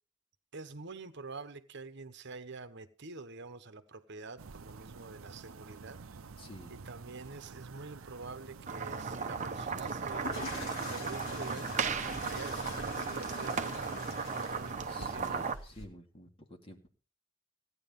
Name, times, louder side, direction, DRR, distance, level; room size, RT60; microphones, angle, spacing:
voice 1, 0.5-6.0 6.7-15.6, right 3 dB, 55° right, 1.1 m, -47 dB
sound 1, 4.4-15.5, right 5 dB, 75° right, 0.6 m, -49 dB
voice 2, 6.4-6.8 14.8-16.9, left 1 dB, 25° left, 2.5 m, -51 dB
sound 2, 8.7-15.6, right 5 dB, 35° right, 0.9 m, -36 dB
sound 3, 9.9-15.9, left 2 dB, 70° left, 3.6 m, -45 dB
16.5 x 9.9 x 5.4 m
head